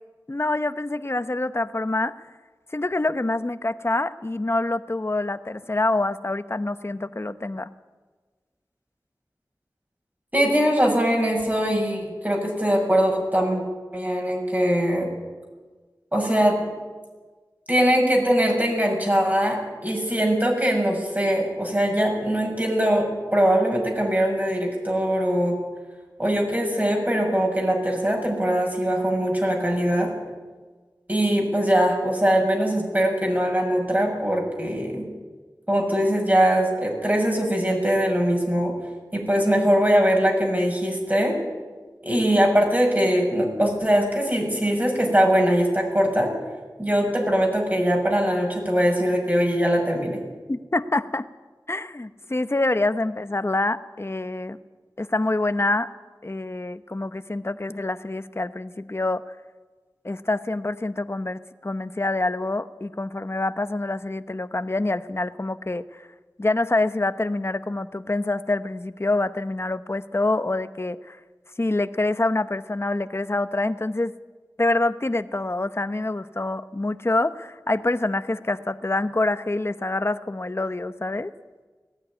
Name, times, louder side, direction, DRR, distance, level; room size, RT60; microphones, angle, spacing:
voice 1, 0.3-2.1 2.7-7.7 50.5-51.2 51.7-54.6 55.0-55.9 56.2-59.2 60.0-66.0 66.4-71.2 71.6-74.1 74.6-81.3, left 2 dB, 35° left, 12 dB, 0.9 m, -26 dB
voice 2, 10.3-13.6 13.9-15.1 16.1-16.6 17.7-25.6 26.2-30.1 31.1-35.1 35.7-38.7 39.1-41.3 42.0-46.3 46.8-50.2, equal, 25° right, 0 dB, 6.6 m, -22 dB
19.0 x 15.0 x 9.8 m, 1.3 s
wide cardioid pair, 60°, 7 cm